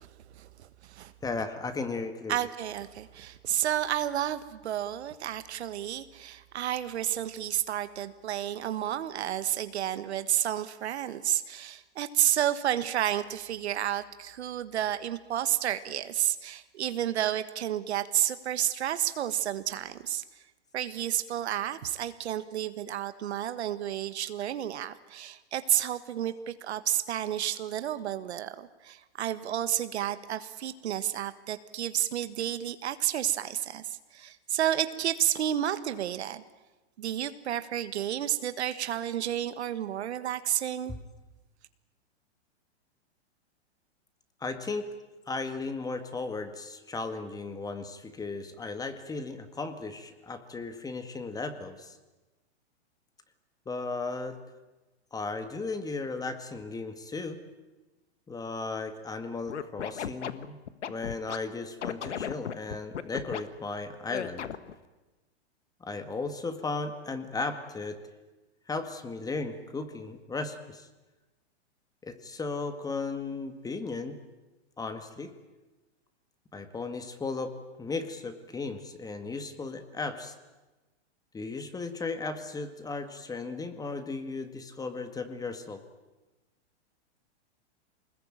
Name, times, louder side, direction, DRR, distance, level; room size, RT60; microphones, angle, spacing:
voice 1, 0.4-1.1 2.3-20.2 20.7-33.8 34.1-36.4 37.0-40.9, right 11 dB, 70° right, 12 dB, 1.6 m, -31 dB
voice 2, 1.2-2.4 44.4-44.9 45.3-52.0 53.7-54.4 55.1-57.4 58.3-60.6 60.9-64.5 65.8-68.0 68.7-70.9 72.0-74.2 74.8-75.3 76.5-80.3 81.3-85.8, left 3 dB, 10° left, 9 dB, 1.9 m, -36 dB
Scratching (performance technique), 59.5-61.4 61.8-63.4 64.1-64.7, left 9 dB, 85° left, 1.6 m, -35 dB
24.5 x 20.5 x 9.0 m, 1.1 s
hypercardioid pair, 135°, 34 cm